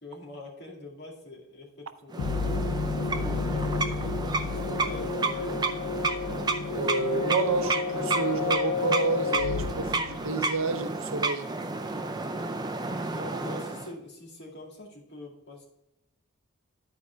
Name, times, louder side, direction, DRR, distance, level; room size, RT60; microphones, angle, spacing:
voice 1, 0.0-2.4 3.0-5.8 12.4-12.6 13.1-15.7, left 1 dB, 50° left, -2 dB, 2.2 m, -45 dB
sound 1, 2.1-13.9, right 3 dB, 20° right, 0.5 m, -31 dB
sound 2, 2.2-10.8, left 5 dB, 85° left, 0.4 m, -31 dB
voice 2, 6.7-11.5, right 4 dB, 70° right, 9 dB, 0.6 m, -30 dB
11.0 x 4.7 x 4.5 m, 0.88 s
head